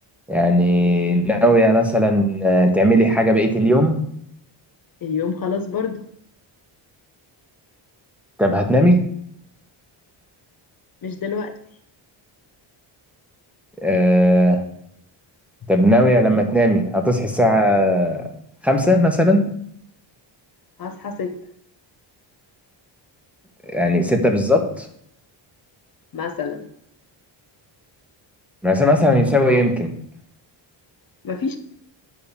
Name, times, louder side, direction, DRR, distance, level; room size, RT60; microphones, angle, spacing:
voice 1, 0.3-4.0 8.4-9.0 13.8-14.6 15.7-18.2 18.6-19.4 23.7-24.9 28.6-29.9, equal, 5° right, 2 dB, 1.1 m, -17 dB
voice 2, 5.0-6.0 11.0-11.6 20.8-21.4 26.1-26.7 31.2-31.6, left 5 dB, 45° left, 6 dB, 1.0 m, -27 dB
8.7 x 5.7 x 7.3 m, 0.68 s
cardioid pair, 170°, 47 cm